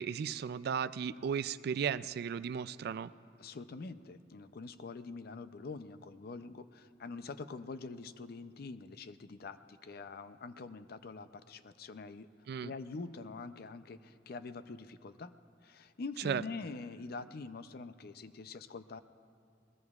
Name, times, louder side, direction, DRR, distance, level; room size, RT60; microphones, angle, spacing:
voice 1, 0.0-3.1 12.5-12.7 16.2-16.4, right 7 dB, 60° right, 15 dB, 0.3 m, -35 dB
voice 2, 3.4-12.3 12.6-15.4 15.6-19.0, left 3 dB, 60° left, 12 dB, 0.5 m, -45 dB
21.0 x 19.0 x 2.4 m, 2.7 s
head